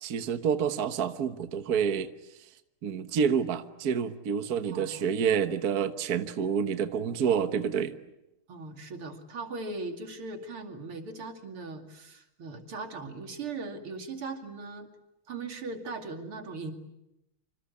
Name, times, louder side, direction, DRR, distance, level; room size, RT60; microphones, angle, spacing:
voice 1, 0.0-2.1 2.8-7.9, right 7 dB, 50° right, 9 dB, 1.6 m, -28 dB
voice 2, 4.7-5.1 8.5-14.9 15.3-16.7, right 3 dB, 90° right, 5 dB, 3.5 m, -39 dB
26.5 x 26.5 x 8.4 m, 0.89 s
omnidirectional pair, 2.3 m